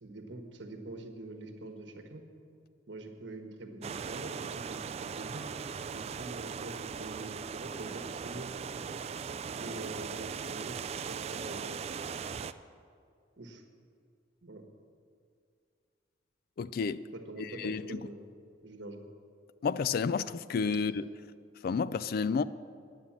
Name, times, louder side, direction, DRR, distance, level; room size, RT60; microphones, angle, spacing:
voice 1, 0.0-2.2 2.9-5.5 5.9-8.5 9.6-11.8 13.4-13.6 14.4-14.6 17.1-18.3 18.6-19.0, right 2 dB, 75° right, 1.4 m, -45 dB
sound 1, 3.8-12.5, right 6 dB, 35° right, 0.3 m, -39 dB
voice 2, 16.6-17.0 17.4-18.1 19.6-21.1 21.6-22.4, left 5 dB, 55° left, 0.3 m, -31 dB
9.6 x 9.3 x 7.3 m
head